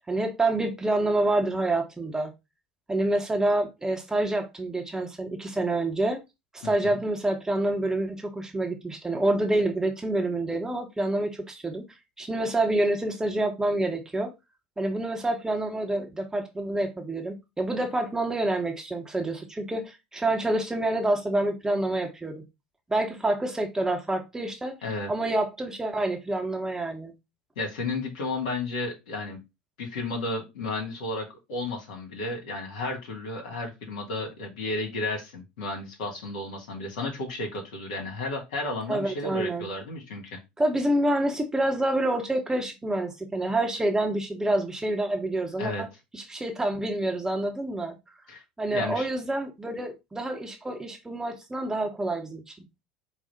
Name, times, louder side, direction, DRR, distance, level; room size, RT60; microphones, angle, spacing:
voice 1, 0.1-2.3 2.9-6.2 6.5-11.8 12.2-14.3 14.8-22.4 22.9-24.8 25.1-27.1 38.9-39.7 40.6-45.9 46.1-48.0 48.6-52.5, right 1 dB, 10° right, 0.8 m, -27 dB
voice 2, 6.6-7.0 24.8-25.1 27.5-29.4 29.8-40.4 45.6-45.8 48.3-48.4 48.7-49.1, left 2 dB, 65° left, 1.4 m, -33 dB
4.8 x 2.0 x 4.0 m
figure-of-eight pair, 75°, 5 cm